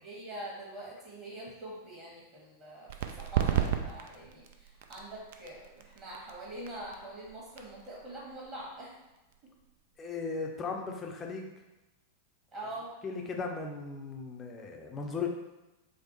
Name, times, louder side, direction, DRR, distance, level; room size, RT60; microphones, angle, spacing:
voice 1, 0.0-8.9 9.4-9.5 12.5-12.9, right 1 dB, 30° right, -5 dB, 1.5 m, -44 dB
sound 1, 2.9-10.2, right 10 dB, 55° right, 0.3 m, -36 dB
voice 2, 10.0-11.5 13.0-15.3, left 4 dB, 25° left, 1 dB, 0.5 m, -37 dB
4.8 x 2.0 x 3.0 m, 1.0 s
figure-of-eight pair, 90°, 0 cm